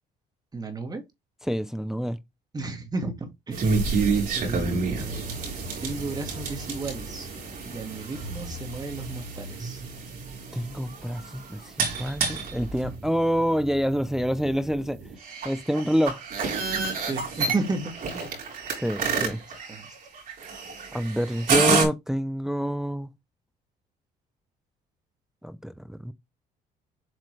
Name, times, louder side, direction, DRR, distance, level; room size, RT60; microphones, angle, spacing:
voice 1, 0.5-1.0 2.5-3.8 4.3-5.4 5.8-7.3 7.6-9.8 17.0-18.4 19.0-19.4 19.7-20.0, right 3 dB, 25° right, 2.3 m, -33 dB
voice 2, 1.5-2.2 10.5-15.0 15.4-16.2 18.8-19.4 20.9-23.1 25.4-26.1, equal, 5° right, 0.5 m, -27 dB
sound 1, 3.5-21.9, right 4 dB, 55° right, 4.0 m, -30 dB
7.9 x 4.3 x 3.3 m
cardioid pair, 110°, 17 cm